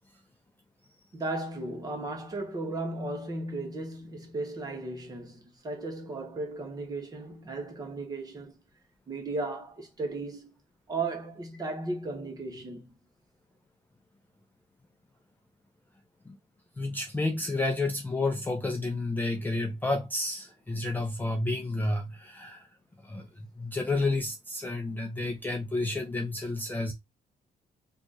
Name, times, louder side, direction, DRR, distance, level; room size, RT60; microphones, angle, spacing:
voice 1, 1.1-8.6 9.1-10.5 10.9-12.9, right 2 dB, 25° right, 0.9 m, -35 dB
voice 2, 16.8-22.7 23.0-26.9, left 2 dB, 10° left, 0.4 m, -30 dB
2.9 x 2.4 x 3.8 m
cardioid pair, 170°, 16 cm